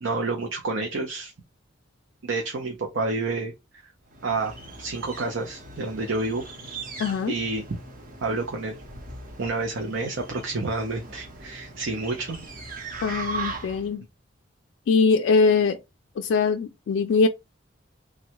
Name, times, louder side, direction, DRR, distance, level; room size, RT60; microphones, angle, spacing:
voice 1, 0.0-1.3 2.2-3.5 4.2-4.5 4.8-6.4 7.3-7.6 8.2-8.8 9.4-12.5 13.1-13.4, right 3 dB, 75° right, 0.6 m, -29 dB
sound 1, 4.1-13.9, right 3 dB, 45° right, 0.8 m, -39 dB
voice 2, 7.0-7.3 13.0-14.1 14.9-15.8 16.2-17.3, left 4 dB, 75° left, 0.3 m, -22 dB
3.2 x 2.2 x 2.8 m
head